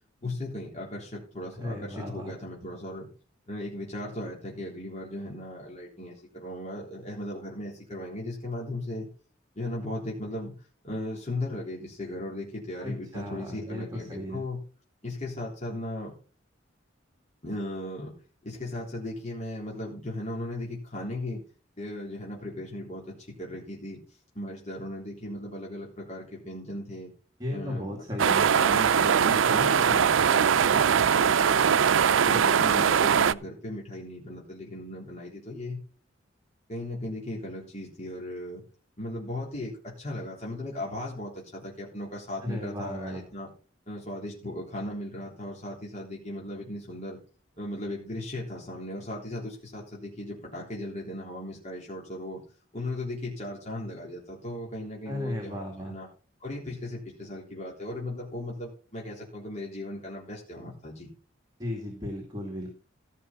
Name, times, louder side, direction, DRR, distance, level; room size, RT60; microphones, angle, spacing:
voice 1, 0.2-3.1 3.5-9.1 9.6-10.5 10.8-14.6 15.0-16.1 17.4-18.1 18.4-21.4 21.8-23.0 23.4-24.0 24.3-27.1 27.5-27.9 28.2-31.8 32.2-35.8 36.7-38.6 39.0-43.5 43.9-47.2 47.6-52.4 52.7-56.1 56.4-61.1, left 1 dB, 35° left, -4 dB, 3.7 m, -37 dB
voice 2, 1.6-2.3 12.8-14.4 27.4-28.5 42.4-43.2 55.1-55.9 61.6-62.7, left 1 dB, 20° right, 0 dB, 2.5 m, -35 dB
sound 1, 28.2-33.3, right 7 dB, 85° right, 0.5 m, -21 dB
14.5 x 5.9 x 5.9 m, 0.37 s
head